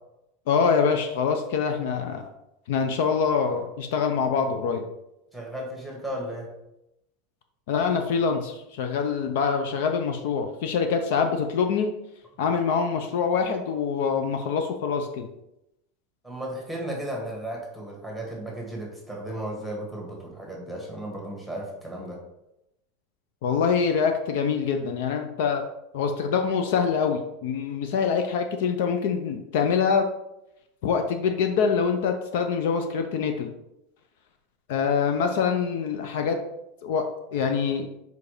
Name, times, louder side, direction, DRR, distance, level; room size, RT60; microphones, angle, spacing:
voice 1, 0.5-2.3 2.7-4.8 7.7-11.9 12.4-15.3 23.4-25.6 25.9-30.1 30.8-33.5 34.7-36.4 36.8-37.9, left 6 dB, 65° left, 6 dB, 0.7 m, -25 dB
voice 2, 5.3-6.5 16.2-22.2, right 1 dB, 5° left, -2 dB, 1.6 m, -35 dB
4.8 x 4.7 x 5.0 m, 0.87 s
supercardioid pair, 165°, 0 cm